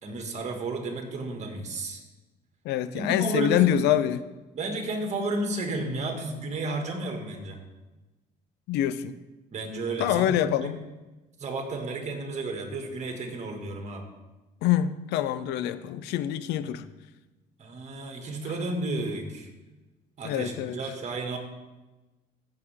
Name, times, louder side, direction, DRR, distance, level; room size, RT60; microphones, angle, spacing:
voice 1, 0.0-2.0 2.9-3.7 4.5-7.6 9.5-10.8 11.4-14.0 16.6-16.7 17.6-19.5 20.2-21.4, right 2 dB, 45° right, 3 dB, 2.1 m, -32 dB
voice 2, 2.6-4.2 8.7-9.2 10.0-10.8 14.6-16.8 20.2-20.8, left 11 dB, 85° left, 13 dB, 0.6 m, -25 dB
15.5 x 6.9 x 3.6 m, 1.1 s
cardioid pair, 110°, 17 cm